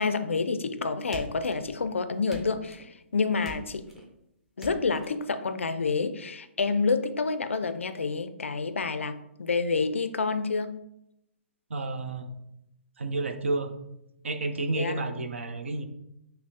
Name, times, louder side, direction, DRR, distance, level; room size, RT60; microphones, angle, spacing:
voice 1, 0.0-3.8 4.6-10.7 14.8-15.0, left 4 dB, 80° left, 10 dB, 0.3 m, -28 dB
sound 1, 1.1-1.9 2.3-2.9 3.4-4.1 4.6-5.1, equal, 5° right, 0.5 m, -44 dB
voice 2, 11.7-12.3 13.0-13.7 14.2-15.9, right 2 dB, 75° right, 8 dB, 0.4 m, -30 dB
5.4 x 2.0 x 2.7 m, 0.84 s
figure-of-eight pair, 130°, 7 cm